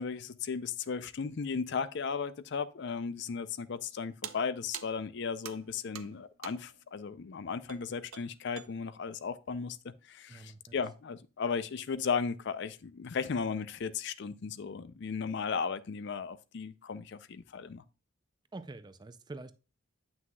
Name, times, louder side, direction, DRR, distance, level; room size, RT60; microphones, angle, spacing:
voice 1, 0.0-17.8, left 5 dB, 55° left, 0.4 m, -36 dB
sound 1, 4.2-6.9 7.7-8.8, right 11 dB, 85° right, 0.6 m, -46 dB
voice 2, 10.3-10.8 18.5-19.5, right 2 dB, 20° right, 0.4 m, -46 dB
9.2 x 6.1 x 2.3 m
head